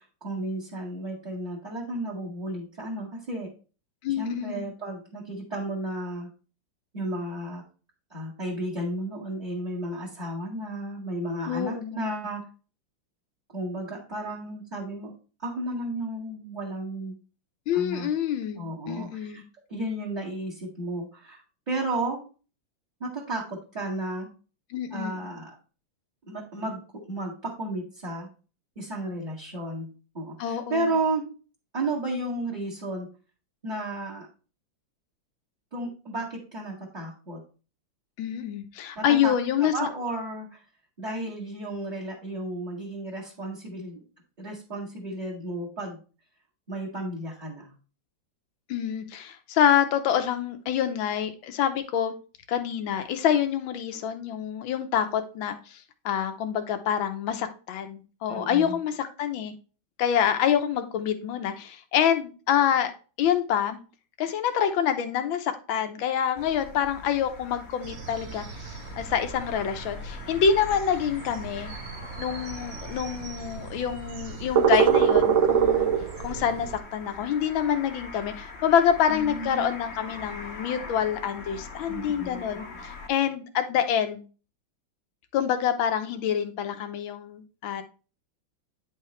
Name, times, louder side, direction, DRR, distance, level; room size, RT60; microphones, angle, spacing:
voice 1, 0.0-3.5 4.2-6.3 6.9-7.6 8.1-12.4 13.5-15.1 15.4-17.1 17.7-18.1 18.5-19.4 19.7-22.2 23.0-24.3 24.9-25.6 26.3-28.3 28.8-29.9 30.1-31.3 31.7-33.1 33.6-34.3 35.7-37.4 39.0-39.3 39.6-40.6 41.0-44.0 44.4-46.0 46.7-47.7 58.3-58.8 79.1-79.8 81.9-82.7, right 1 dB, 20° right, -4 dB, 2.1 m, -33 dB
voice 2, 4.0-4.6 11.5-12.1 17.7-19.4 24.7-25.2 30.4-30.9 38.2-39.9 48.7-52.1 52.5-59.5 60.0-62.9 63.2-63.8 64.2-68.4 68.9-71.7 72.2-75.9 76.2-84.2 85.3-87.8, left 8 dB, 80° left, 7 dB, 1.6 m, -26 dB
sound 1, 66.4-83.1, left 4 dB, 40° left, 1.2 m, -43 dB
sound 2, 67.8-76.8, right 7 dB, 75° right, 0.7 m, -27 dB
9.6 x 5.7 x 3.2 m, 0.35 s
omnidirectional pair, 2.1 m